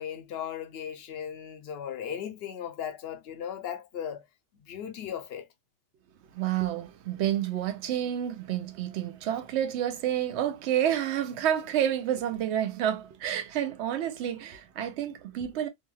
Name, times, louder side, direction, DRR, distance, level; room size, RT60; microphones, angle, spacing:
voice 1, 0.0-4.2 4.6-5.5, left 9 dB, 65° left, 0.8 m, -37 dB
voice 2, 6.3-15.7, right 10 dB, 80° right, 0.8 m, -29 dB
2.7 x 2.2 x 3.0 m
omnidirectional pair, 1.1 m